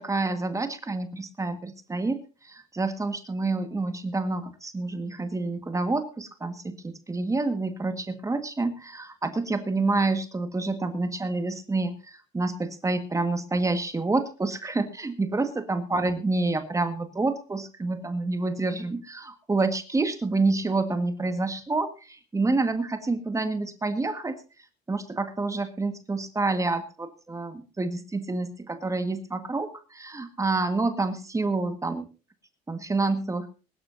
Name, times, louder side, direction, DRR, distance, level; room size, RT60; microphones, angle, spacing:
voice 1, 0.0-2.2 2.4-24.4 24.9-32.0 32.7-33.5, right 3 dB, 20° right, 8 dB, 1.7 m, -28 dB
22.5 x 12.5 x 2.7 m, 0.33 s
cardioid pair, 110°, 17 cm